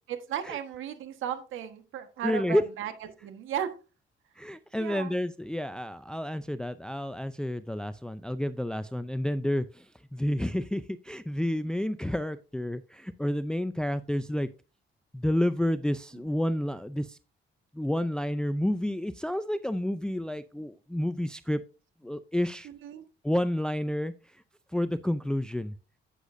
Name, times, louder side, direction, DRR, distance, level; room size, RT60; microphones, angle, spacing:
voice 1, 0.1-3.7 4.8-5.1 16.2-16.3 22.6-23.0, right 9 dB, 80° right, 1.4 m, -35 dB
voice 2, 2.2-2.6 4.4-14.5 15.1-17.2 17.7-21.6 22.0-22.7 23.2-24.4 24.7-25.7, left 1 dB, 5° left, 0.5 m, -30 dB
10.0 x 8.3 x 2.6 m
cardioid pair, 90°, 20 cm